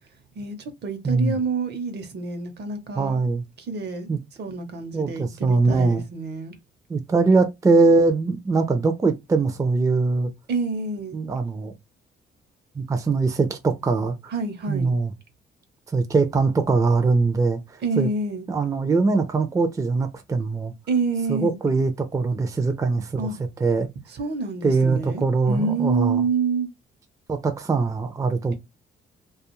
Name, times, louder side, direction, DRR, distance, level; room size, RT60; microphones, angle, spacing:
voice 1, 0.4-3.2 3.7-4.1 4.4-6.6 10.5-11.2 14.3-14.9 17.8-18.5 20.9-21.6 23.2-23.4 24.1-26.7, right 4 dB, 60° right, 0.8 m, -27 dB
voice 2, 1.0-1.4 3.0-3.4 4.1-4.2 4.9-6.0 6.9-10.3 11.1-11.7 12.8-14.2 14.7-15.1 15.9-18.1 18.5-20.7 21.3-23.3 23.6-23.9 24.6-26.2 27.3-28.5, right 3 dB, 15° right, 0.4 m, -22 dB
2.3 x 2.3 x 2.9 m
cardioid pair, 90°, 20 cm